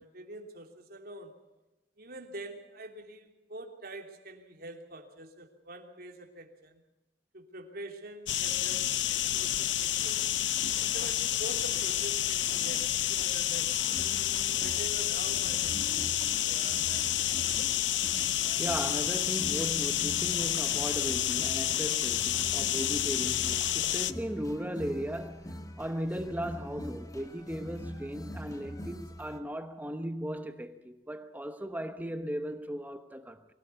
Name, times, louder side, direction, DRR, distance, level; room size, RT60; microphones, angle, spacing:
voice 1, 0.0-1.3 2.0-6.8 7.3-10.2 10.8-13.9 14.6-17.1, right 1 dB, 55° right, 3.2 m, -45 dB
sound 1, 8.3-24.1, left 12 dB, 85° left, 0.8 m, -29 dB
sound 2, 13.8-29.4, equal, 20° left, 1.6 m, -44 dB
voice 2, 18.6-33.5, equal, 10° right, 1.0 m, -37 dB
24.0 x 17.0 x 7.0 m
head